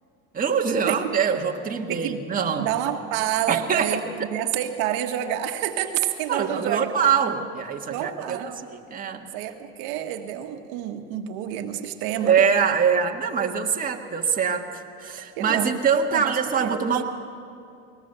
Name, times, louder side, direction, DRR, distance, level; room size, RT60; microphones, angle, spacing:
voice 1, 0.3-2.7 3.5-4.3 6.3-8.4 8.7-9.3 12.2-17.0, right 6 dB, 20° right, 1 dB, 1.7 m, -24 dB
voice 2, 1.9-2.2 2.5-4.0 4.3-6.9 7.9-8.7 9.3-12.3 15.4-15.8 16.1-16.8, right 11 dB, 65° right, 5 dB, 1.6 m, -28 dB
22.5 x 19.5 x 6.9 m, 2.5 s
supercardioid pair, 120°, 39 cm